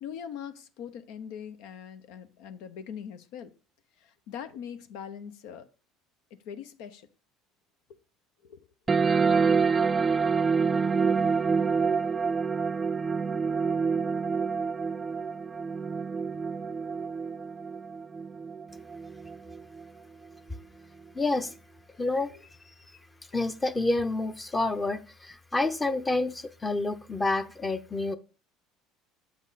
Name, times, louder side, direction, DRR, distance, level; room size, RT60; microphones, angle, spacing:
voice 1, 0.0-3.5 4.0-5.7 6.3-7.1 8.4-8.6, left 8 dB, 75° left, 0.8 m, -42 dB
sound 1, 8.9-19.9, right 5 dB, 25° right, 0.4 m, -27 dB
voice 2, 21.1-21.5 22.0-22.3 23.3-28.2, left 2 dB, 15° left, 0.8 m, -28 dB
7.5 x 5.3 x 4.0 m
supercardioid pair, 95°, 0 cm